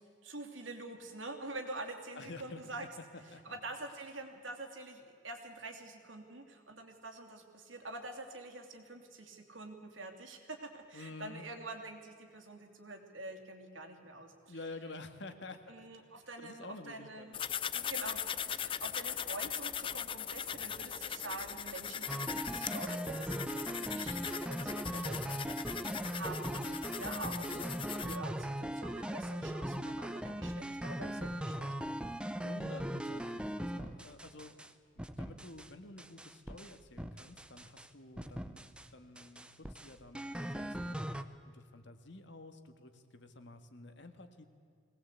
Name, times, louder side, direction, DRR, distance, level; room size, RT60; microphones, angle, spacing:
voice 1, 0.2-2.9 3.4-14.6 15.7-17.4 17.7-31.7, right 2 dB, 75° right, 5 dB, 2.8 m, -46 dB
voice 2, 2.1-2.6 3.1-3.6 10.9-11.4 14.5-15.8 16.2-17.4 32.4-34.5 35.0-44.4, left 2 dB, 60° left, 8 dB, 1.7 m, -50 dB
sound 1, 17.3-28.2, left 8 dB, 25° left, 0.4 m, -40 dB
sound 2, 22.1-34.7 35.0-35.7 36.0-37.9 38.2-38.9 39.2-41.2, equal, 5° right, 0.7 m, -39 dB
22.0 x 18.5 x 8.3 m, 2.3 s
head